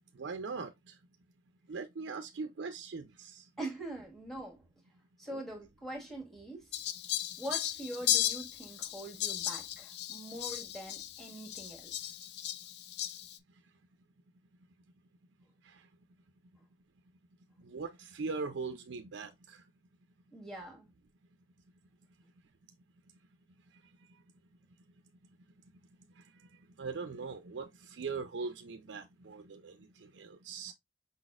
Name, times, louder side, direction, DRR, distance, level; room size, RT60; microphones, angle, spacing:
voice 1, 0.1-0.9 1.7-3.4 5.3-5.4 15.6-15.8 17.6-19.6 26.8-30.7, right 4 dB, 80° right, 0.5 m, -41 dB
voice 2, 3.6-4.6 5.2-6.7 7.4-11.9 20.3-20.9, right 1 dB, ahead, 1.6 m, -43 dB
Fowl, 6.7-13.4, left 12 dB, 60° left, 0.4 m, -36 dB
5.2 x 4.0 x 2.4 m
head